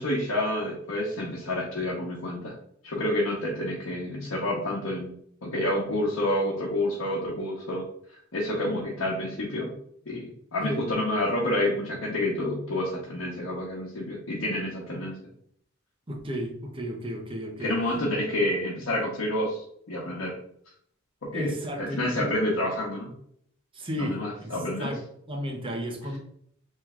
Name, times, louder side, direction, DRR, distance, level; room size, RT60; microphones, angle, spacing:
voice 1, 0.0-2.5 2.8-5.1 5.4-7.9 8.3-9.7 10.1-15.2 17.6-20.4 21.2-23.1 24.0-24.9, left 1 dB, 85° left, 0.9 m, -29 dB
voice 2, 16.1-17.8 21.3-22.3 23.7-26.2, equal, 25° right, 0.8 m, -33 dB
3.3 x 3.2 x 3.6 m
head